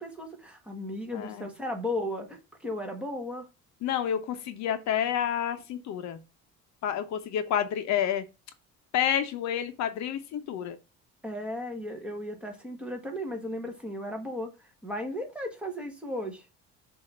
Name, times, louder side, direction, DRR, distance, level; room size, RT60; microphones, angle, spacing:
voice 1, 0.0-3.5 11.2-16.4, left 1 dB, 5° right, 1.3 m, -35 dB
voice 2, 1.1-1.5 3.8-6.2 6.8-8.2 8.9-10.8, left 9 dB, 65° left, 0.9 m, -29 dB
6.5 x 2.8 x 5.4 m
cardioid pair, 150°, 30 cm